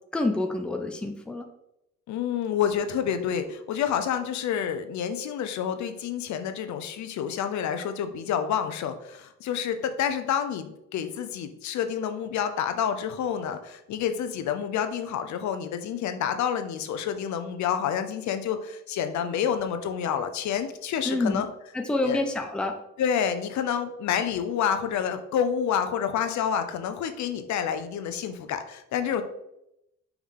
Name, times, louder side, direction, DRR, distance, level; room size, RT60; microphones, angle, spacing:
voice 1, 0.1-1.5 21.0-21.4 21.7-22.8, left 2 dB, 5° left, 4 dB, 0.5 m, -27 dB
voice 2, 2.1-21.5 22.0-22.2 23.0-29.2, left 8 dB, 70° left, 8 dB, 0.7 m, -28 dB
5.5 x 4.6 x 3.7 m, 0.83 s
cardioid pair, 145°, 29 cm